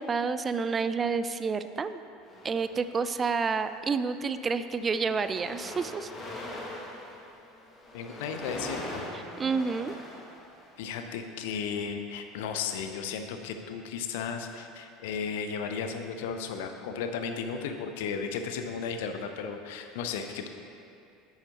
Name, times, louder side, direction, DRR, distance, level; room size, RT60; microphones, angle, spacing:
voice 1, 0.0-2.0 2.4-6.1 9.4-9.9, right 5 dB, 25° right, 11 dB, 0.3 m, -29 dB
sound 1, 2.2-3.2 4.0-4.2 4.5-11.0, left 1 dB, 25° left, 1.9 m, -42 dB
voice 2, 7.9-9.1 10.8-20.5, left 6 dB, 60° left, 6 dB, 0.7 m, -35 dB
10.5 x 8.6 x 3.0 m, 2.5 s
figure-of-eight pair, 70°, 0 cm